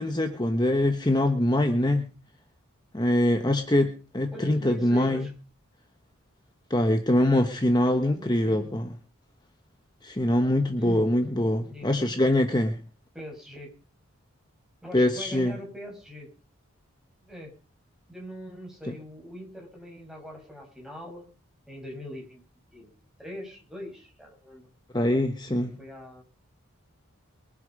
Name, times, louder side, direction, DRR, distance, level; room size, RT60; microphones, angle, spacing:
voice 1, 0.0-2.1 2.9-5.3 6.7-8.9 10.0-12.8 14.9-15.6 18.9-19.0 24.9-25.7, left 1 dB, 20° left, 6 dB, 1.1 m, -24 dB
voice 2, 4.3-5.3 7.9-8.7 10.8-12.3 13.1-13.7 14.8-16.3 17.2-17.6 18.1-21.3 21.7-22.4 22.7-22.9 23.2-24.7 25.5-26.2, equal, ahead, -1 dB, 5.7 m, -42 dB
22.5 x 9.9 x 5.3 m, 0.36 s
head